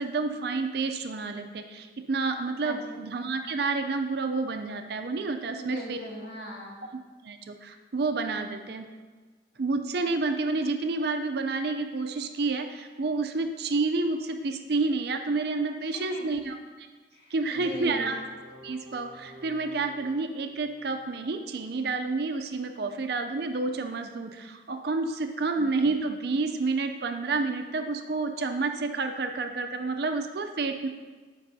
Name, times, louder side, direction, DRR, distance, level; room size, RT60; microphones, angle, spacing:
voice 1, 0.0-6.0 7.2-8.9 9.6-16.9 17.3-18.2 18.6-30.9, right 3 dB, 55° right, 6 dB, 0.5 m, -29 dB
voice 2, 2.6-3.0 5.5-6.9 15.9-16.4 17.1-18.1 25.6-25.7, left 1 dB, 65° left, -2 dB, 1.5 m, -40 dB
sound 1, 17.5-23.2, right 1 dB, 30° right, 1.4 m, -51 dB
12.5 x 5.3 x 2.7 m, 1.4 s
head